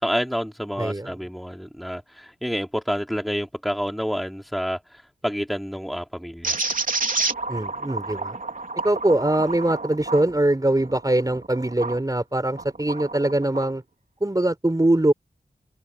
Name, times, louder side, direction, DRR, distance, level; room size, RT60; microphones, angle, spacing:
voice 1, 0.0-6.6, equal, ahead, 2.9 m, -28 dB
voice 2, 0.8-1.2 7.5-8.4 8.8-13.8 14.2-15.1, right 1 dB, 25° right, 5.2 m, -22 dB
sound 1, 6.4-12.0 12.5-13.7, right 3 dB, 60° right, 3.3 m, -30 dB
open air
wide cardioid pair, 60°, 16 cm